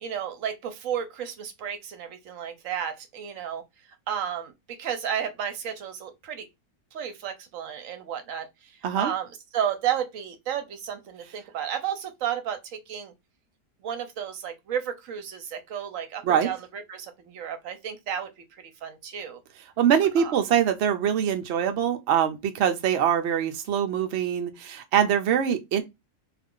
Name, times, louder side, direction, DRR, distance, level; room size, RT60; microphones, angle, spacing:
voice 1, 0.0-3.6 4.1-6.5 6.9-13.1 13.8-19.4 20.2-20.3, right 9 dB, 65° right, 0.9 m, -33 dB
voice 2, 19.8-25.8, right 9 dB, 80° right, 0.6 m, -23 dB
2.5 x 2.4 x 3.5 m
omnidirectional pair, 1.7 m